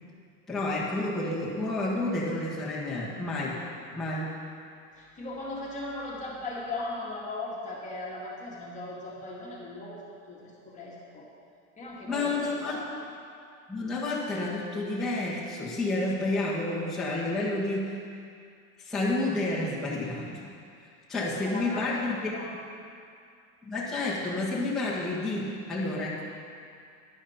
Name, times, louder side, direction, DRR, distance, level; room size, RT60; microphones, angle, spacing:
voice 1, 0.5-3.6 3.9-4.3 12.1-12.8 13.7-18.0 18.8-20.5 21.1-22.3 23.6-26.2, left 2 dB, ahead, -10 dB, 1.9 m, -30 dB
voice 2, 5.0-11.3 11.8-12.9 21.4-22.0 22.3-22.5, left 2 dB, 20° left, -4 dB, 2.1 m, -38 dB
12.5 x 11.0 x 4.4 m, 2.3 s
supercardioid pair, 150°, 39 cm